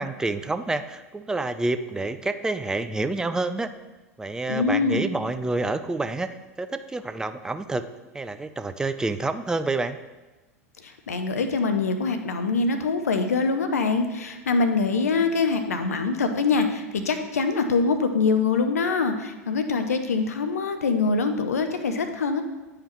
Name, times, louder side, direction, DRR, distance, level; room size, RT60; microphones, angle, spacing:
voice 1, 0.0-3.7 4.2-6.3 6.6-7.8 8.1-10.0, right 2 dB, 10° right, 10 dB, 0.3 m, -28 dB
voice 2, 4.5-5.1 10.8-22.4, left 4 dB, 75° left, 7 dB, 0.6 m, -24 dB
9.1 x 4.9 x 3.0 m, 1.1 s
figure-of-eight pair, 85°, 8 cm